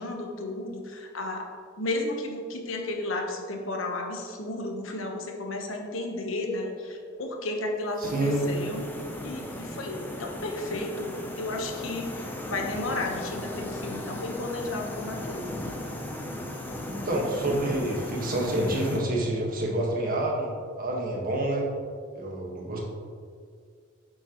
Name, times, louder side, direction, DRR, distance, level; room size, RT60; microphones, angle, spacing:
voice 1, 0.0-1.5 1.8-8.9 9.2-15.5, left 2 dB, 75° left, 2 dB, 1.2 m, -33 dB
sound 1, 8.0-19.0, left 1 dB, 10° left, 0.7 m, -37 dB
voice 2, 8.0-8.4 16.9-21.7 22.1-22.8, right 1 dB, 45° right, -2 dB, 1.6 m, -28 dB
8.7 x 7.8 x 3.1 m, 2.1 s
head